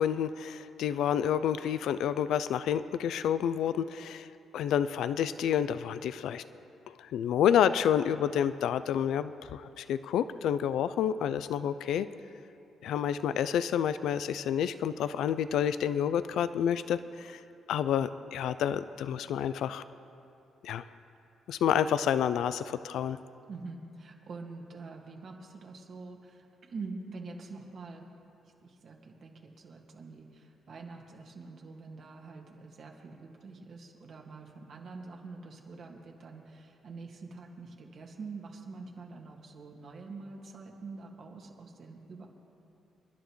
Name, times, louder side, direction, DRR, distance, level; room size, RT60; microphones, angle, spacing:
voice 1, 0.0-4.3 4.5-6.4 6.9-12.1 12.8-17.4 17.7-19.8 20.6-20.8 21.5-23.2, left 9 dB, 80° left, 13 dB, 0.3 m, -29 dB
voice 2, 23.5-28.1 28.6-42.3, right 3 dB, 55° right, 0 dB, 1.9 m, -45 dB
26.5 x 11.0 x 3.1 m, 2.7 s
cardioid pair, 90°, 0 cm